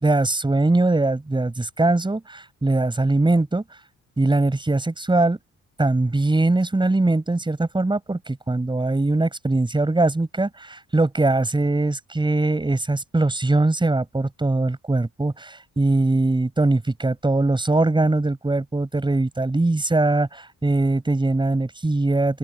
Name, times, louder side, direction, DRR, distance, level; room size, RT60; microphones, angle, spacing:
voice 1, 0.0-3.6 4.2-5.4 5.8-22.4, right 2 dB, 15° right, 5.0 m, -21 dB
open air
cardioid pair, 90°, 30 cm